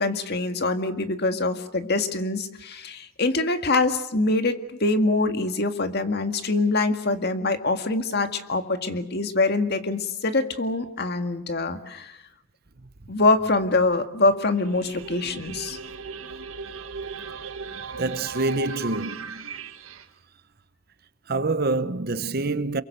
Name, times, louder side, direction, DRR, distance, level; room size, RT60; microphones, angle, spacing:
voice 1, 0.0-12.2 13.1-15.8, left 2 dB, 50° left, 1.9 m, -24 dB
sound 1, 14.5-20.1, right 5 dB, 75° right, 1.5 m, -37 dB
voice 2, 17.9-19.5 21.3-22.8, right 3 dB, 45° right, 0.9 m, -26 dB
28.0 x 23.0 x 6.8 m
head